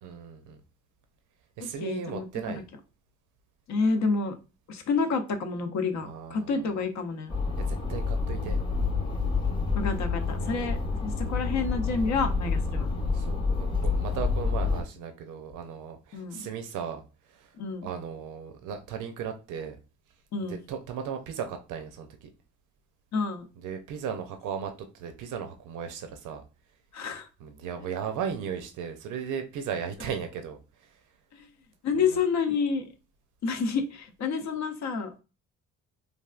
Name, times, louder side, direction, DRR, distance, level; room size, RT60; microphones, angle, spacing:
voice 1, 0.0-0.6 1.6-2.6 6.0-6.7 7.6-8.6 10.4-10.5 13.1-17.5 17.8-19.8 20.4-22.3 23.6-26.4 27.4-31.0 31.9-32.2, right 7 dB, 85° right, 6 dB, 0.6 m, -36 dB
voice 2, 1.6-2.6 3.7-4.3 4.7-7.3 9.7-12.9 16.1-16.4 17.6-17.9 20.3-20.6 23.1-23.5 26.9-27.3 31.3-31.5 31.8-32.9 33.4-35.2, left 4 dB, 65° left, 7 dB, 0.7 m, -29 dB
sound 1, 7.3-14.8, left 4 dB, 15° left, 0.9 m, -28 dB
3.4 x 2.4 x 2.3 m, 0.31 s
cardioid pair, 90°, 30 cm